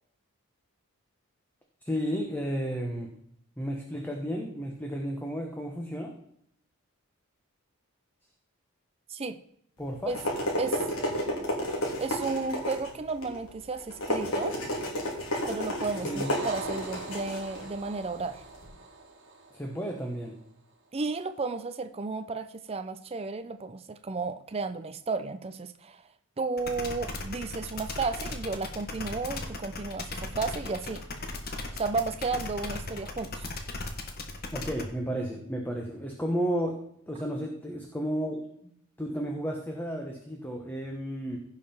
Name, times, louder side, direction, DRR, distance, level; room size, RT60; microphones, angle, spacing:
voice 1, 1.8-3.1 3.6-6.2 9.8-10.1 16.0-16.3 19.5-20.4 34.5-36.8 37.1-38.7 39.0-41.4, equal, 10° left, 0 dB, 1.2 m, -33 dB
sound 1, 9.8-18.6, equal, 70° left, 3.1 m, -32 dB
voice 2, 12.0-14.6 15.5-18.4 20.9-26.0 26.4-31.0 31.7-33.5, right 3 dB, 25° right, 9 dB, 0.5 m, -33 dB
sound 2, 15.8-20.4, right 3 dB, 55° right, 1.6 m, -43 dB
sound 3, 26.6-34.8, left 2 dB, 45° left, 1.4 m, -37 dB
16.0 x 5.8 x 4.4 m, 0.69 s
head